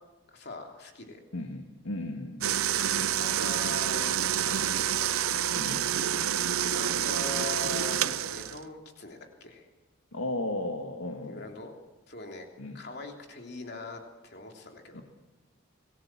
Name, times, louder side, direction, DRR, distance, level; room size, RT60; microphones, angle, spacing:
voice 1, 0.3-1.2 3.2-5.2 6.7-9.7 11.3-11.7 12.1-12.5 12.7-15.0, left 2 dB, 50° left, 2 dB, 3.1 m, -42 dB
voice 2, 1.3-2.5 5.6-5.9 10.1-11.5 12.6-12.8 14.9-15.0, left 1 dB, 80° left, 4 dB, 2.0 m, -35 dB
sound 1, 2.4-8.6, right 10 dB, 80° right, 0.7 m, -28 dB
25.5 x 17.0 x 7.5 m, 1.2 s
head